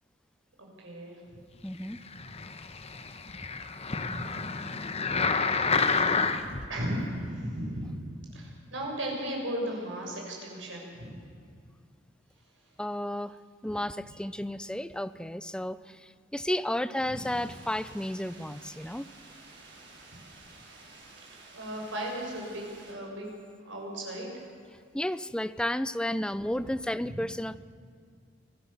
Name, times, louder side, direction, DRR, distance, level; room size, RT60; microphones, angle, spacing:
voice 1, 0.6-1.2 4.0-4.3 6.7-8.0 8.3-11.1 17.1-17.2 21.5-23.3 23.7-24.3, right 1 dB, 85° right, -1 dB, 6.8 m, -36 dB
voice 2, 1.6-2.0 12.8-13.4 13.6-19.1 24.9-27.6, left 1 dB, 5° left, 14 dB, 0.5 m, -32 dB
sound 1, 2.1-6.7 7.3-7.4, left 4 dB, 35° left, 1.1 m, -29 dB
sound 2, 17.1-22.9, right 3 dB, 65° right, 5.2 m, -52 dB
25.0 x 16.5 x 7.3 m, 2.3 s
head